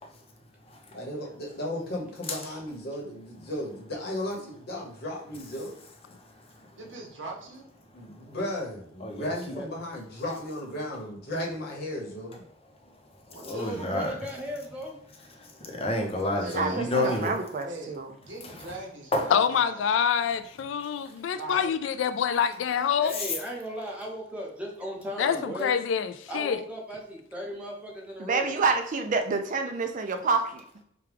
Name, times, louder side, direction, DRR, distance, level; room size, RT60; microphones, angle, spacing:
voice 1, 0.9-5.8 7.9-12.4, left 1 dB, 55° left, -1 dB, 1.1 m, -35 dB
voice 2, 6.1-6.6 9.0-9.6 13.4-14.1 15.4-17.3 18.4-18.7 19.1-19.3 23.1-23.3, left 1 dB, 30° left, 1 dB, 0.7 m, -30 dB
voice 3, 6.8-7.7 13.3-13.9 16.0-19.8 21.3-21.7, right 2 dB, 75° right, -1 dB, 1.0 m, -41 dB
voice 4, 13.4-15.0 22.9-25.7 26.3-28.6, equal, 5° right, -2 dB, 0.9 m, -37 dB
voice 5, 16.5-18.1 28.2-30.6, right 4 dB, 45° right, 5 dB, 0.4 m, -28 dB
voice 6, 19.3-23.1 25.2-26.6, left 7 dB, 75° left, 12 dB, 0.3 m, -26 dB
4.8 x 2.3 x 3.4 m, 0.67 s
head